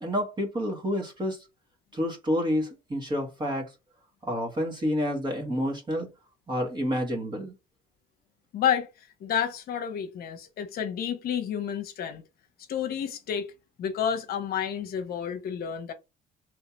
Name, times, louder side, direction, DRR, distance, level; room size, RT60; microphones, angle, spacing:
voice 1, 0.0-1.4 1.9-3.7 4.2-6.1 6.5-7.5, equal, 25° right, 1.6 m, -29 dB
voice 2, 8.5-8.9 9.2-12.2 12.7-13.5 13.8-15.9, left 8 dB, 65° left, 0.9 m, -30 dB
3.3 x 2.8 x 4.4 m
cardioid pair, 110°, 17 cm